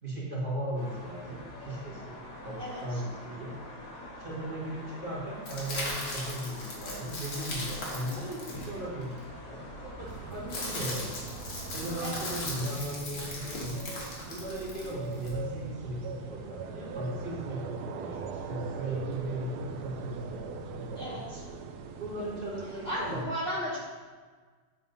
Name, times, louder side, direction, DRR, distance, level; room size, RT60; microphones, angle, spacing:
voice 1, 0.0-3.5 4.2-11.2 11.7-13.8 14.3-21.3 22.0-23.2, right 1 dB, 30° right, -7 dB, 1.8 m, -37 dB
sound 1, 0.8-12.7, left 1 dB, 70° left, 2.0 m, -45 dB
voice 2, 2.6-3.0 8.0-8.2 12.0-12.2 14.8-15.0 20.9-21.4 22.8-23.8, equal, 35° left, -8 dB, 1.3 m, -36 dB
sound 2, 5.4-9.2 10.1-15.3, left 2 dB, 85° left, 2.2 m, -38 dB
sound 3, 10.0-23.2, right 5 dB, 70° right, 1.0 m, -41 dB
7.9 x 3.5 x 5.4 m, 1.5 s
omnidirectional pair, 2.0 m